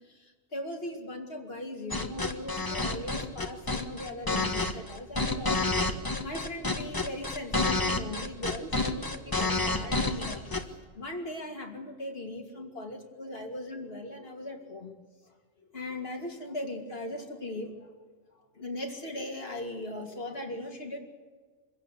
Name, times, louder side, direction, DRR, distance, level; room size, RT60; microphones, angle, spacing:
voice 1, 0.0-5.9 6.2-10.7 10.9-14.9 15.6-17.9 18.5-21.0, left 1 dB, 45° left, 2 dB, 3.0 m, -39 dB
sound 1, 1.9-10.6, left 2 dB, 15° left, 1.5 m, -29 dB
25.5 x 16.0 x 8.4 m, 1.5 s
omnidirectional pair, 1.4 m